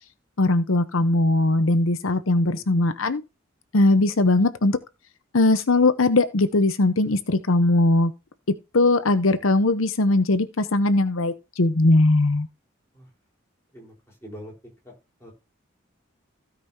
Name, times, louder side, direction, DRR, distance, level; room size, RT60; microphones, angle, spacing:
voice 1, 0.4-3.2 3.7-4.8 5.3-8.1 8.7-12.5, left 2 dB, 85° left, 0.8 m, -20 dB
voice 2, 2.0-2.6 12.9-13.1 13.7-14.5 14.8-14.9 15.2-15.3, equal, 10° left, 4.2 m, -44 dB
16.0 x 5.4 x 2.8 m
head